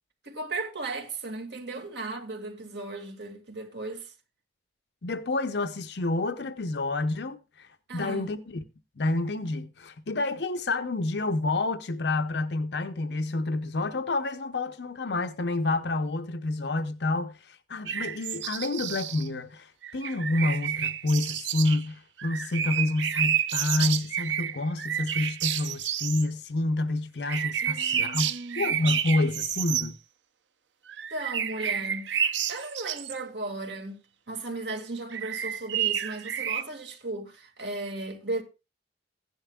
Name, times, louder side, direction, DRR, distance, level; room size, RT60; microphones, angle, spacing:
voice 1, 0.2-4.1 7.9-8.3 27.6-28.7 31.1-34.0 34.3-38.4, right 2 dB, 70° right, 2.2 m, -36 dB
voice 2, 5.0-7.7 7.9-8.6 9.0-30.0, left 2 dB, 70° left, 0.8 m, -29 dB
sound 1, 17.9-19.3 19.8-21.8 22.2-26.3 27.3-29.9 30.9-33.2 35.1-36.6, right 9 dB, 90° right, 0.7 m, -30 dB
15.5 x 10.5 x 2.3 m
head